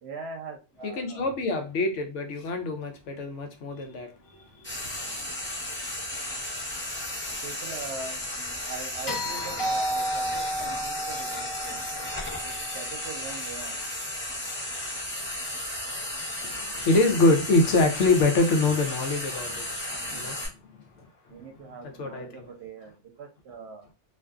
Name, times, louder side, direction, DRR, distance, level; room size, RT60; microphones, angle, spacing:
voice 1, 0.0-1.2 5.0-5.4 7.4-11.9 12.4-13.8 20.1-20.4 21.3-23.8, right 4 dB, 70° right, 0.8 m, -42 dB
voice 2, 0.8-4.9 16.4-19.7 20.1-20.4 21.8-22.5, left 2 dB, 85° left, 1.0 m, -25 dB
Frying (food), 4.6-20.5, left 1 dB, 10° left, 0.8 m, -34 dB
sound 1, 9.1-13.3 15.6-15.7, right 1 dB, 55° left, 1.1 m, -32 dB
2.5 x 2.4 x 2.3 m
omnidirectional pair, 1.2 m